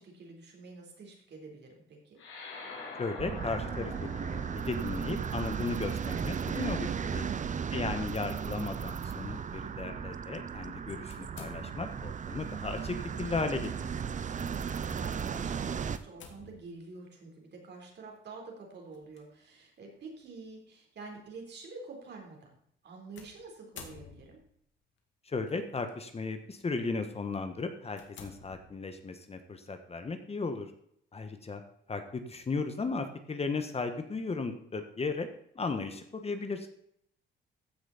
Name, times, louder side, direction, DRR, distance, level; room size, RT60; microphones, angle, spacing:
voice 1, 0.0-2.2 7.2-7.8 14.3-22.6 22.8-24.4, right 3 dB, 60° right, 1 dB, 3.9 m, -48 dB
sound 1, 2.2-6.9, left 3 dB, 85° left, 4.6 m, -46 dB
voice 2, 3.0-3.9 4.3-7.3 7.7-13.9 25.2-30.7 31.1-31.6 31.9-35.3 35.5-36.7, left 4 dB, 30° left, 7 dB, 1.4 m, -35 dB
sound 2, 3.2-16.0, right 7 dB, 40° right, 0.7 m, -36 dB
sound 3, 11.1-12.1 13.4-13.7 14.2-14.3 15.9-16.8 18.9-19.2 20.0-20.1 23.2-24.6 25.5-25.9 26.5-26.7 27.2-27.3 27.9-29.1, left 6 dB, 70° left, 2.2 m, -51 dB
14.5 x 6.2 x 4.2 m, 0.70 s
cardioid pair, 90°, 20 cm